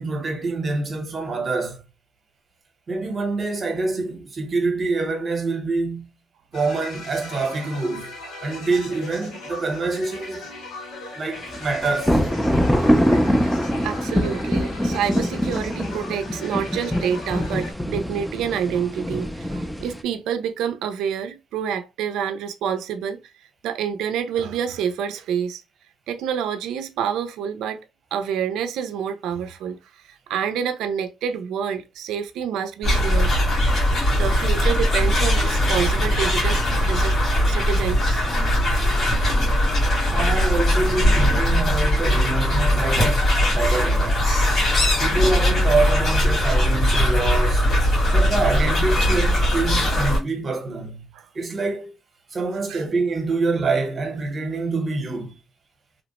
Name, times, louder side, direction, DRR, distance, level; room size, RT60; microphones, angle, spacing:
voice 1, 0.0-1.8 2.9-6.1 6.5-10.5 11.1-12.2 40.1-44.3 45.0-47.7 48.1-51.1 51.3-51.9 52.3-55.4, right 3 dB, 40° right, 0.8 m, -26 dB
sound 1, 6.5-17.7, left 2 dB, 85° left, 1.6 m, -39 dB
sound 2, 11.5-20.0, equal, 5° left, 0.4 m, -23 dB
voice 2, 12.8-13.4 13.8-23.2 23.6-25.6 26.1-27.8 28.1-29.8 30.0-33.3 34.1-37.2 37.4-38.2 51.1-51.3 52.7-52.8, right 8 dB, 85° right, 0.3 m, -28 dB
sound 3, 32.8-50.2, equal, 50° left, 1.6 m, -20 dB
2.8 x 2.0 x 2.9 m
cardioid pair, 90°, 0 cm